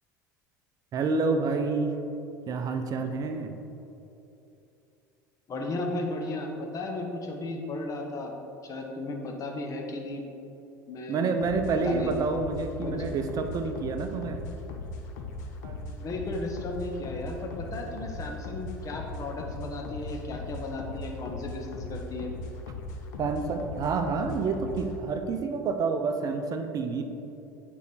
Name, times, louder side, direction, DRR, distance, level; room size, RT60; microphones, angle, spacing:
voice 1, 0.9-2.0 2.5-3.5 11.1-14.4 15.6-16.1 23.2-27.0, right 4 dB, 35° right, 7 dB, 0.7 m, -28 dB
voice 2, 5.5-8.3 8.6-10.2 10.9-11.3 11.8-12.1 12.8-13.1 16.0-22.3, left 2 dB, 35° left, 2 dB, 1.1 m, -35 dB
sound 1, 11.4-25.0, left 2 dB, 65° left, 0.8 m, -39 dB
8.3 x 4.9 x 4.2 m, 2.8 s
figure-of-eight pair, 70°, 10 cm